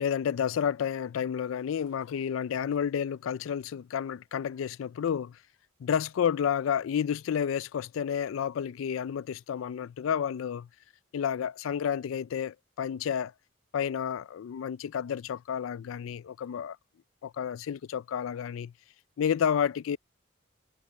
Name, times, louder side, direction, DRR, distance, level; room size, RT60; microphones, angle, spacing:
voice 1, 0.0-5.4 5.8-10.7 11.1-13.3 13.7-16.8 17.2-18.7 19.2-20.0, left 8 dB, 85° left, 0.3 m, -30 dB
head